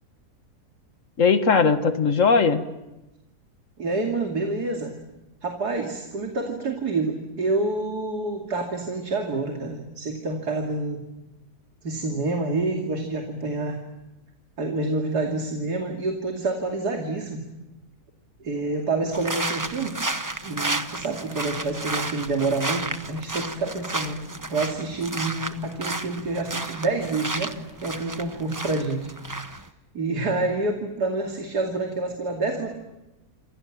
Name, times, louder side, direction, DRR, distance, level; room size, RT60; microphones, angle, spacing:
voice 1, 1.2-2.6, left 5 dB, 55° left, 9 dB, 1.9 m, -19 dB
voice 2, 3.8-4.9 5.4-11.0 11.8-13.8 14.6-17.4 18.4-20.0 20.4-24.2 24.5-27.5 27.8-29.1 29.5-29.6 29.9-32.7, right 3 dB, 85° right, 2 dB, 3.2 m, -27 dB
sound 1, 19.1-29.7, right 2 dB, 15° right, 0.8 m, -32 dB
28.0 x 28.0 x 7.5 m, 1.0 s
omnidirectional pair, 1.6 m